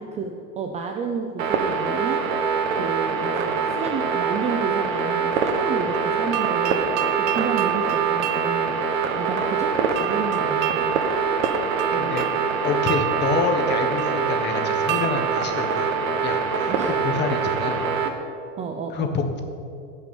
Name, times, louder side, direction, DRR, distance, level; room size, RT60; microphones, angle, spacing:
voice 1, 0.0-2.2 2.7-6.9 7.3-11.0 11.9-12.3 16.7-17.0 17.6-17.7 18.6-19.2, right 5 dB, 15° right, 4 dB, 0.5 m, -31 dB
sound 1, 1.4-18.1, right 5 dB, 80° right, 1.5 m, -24 dB
sound 2, 5.9-16.8, right 17 dB, 60° right, 0.8 m, -31 dB
voice 2, 12.6-15.9 16.2-17.8 18.9-19.4, left 4 dB, 25° left, 6 dB, 1.3 m, -27 dB
16.5 x 6.2 x 7.1 m, 2.6 s
supercardioid pair, 140°, 40 cm